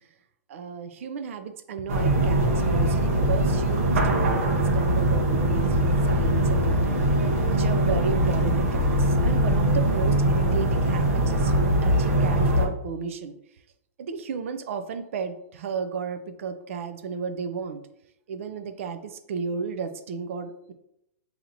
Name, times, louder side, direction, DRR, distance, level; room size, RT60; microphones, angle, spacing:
voice 1, 0.5-7.1 7.4-13.3 14.1-17.8 18.3-20.7, right 6 dB, 65° right, 9 dB, 0.4 m, -33 dB
sound 1, 1.9-12.7, right 1 dB, 80° right, 0.9 m, -22 dB
5.6 x 2.8 x 2.6 m, 0.79 s
hypercardioid pair, 155°, 8 cm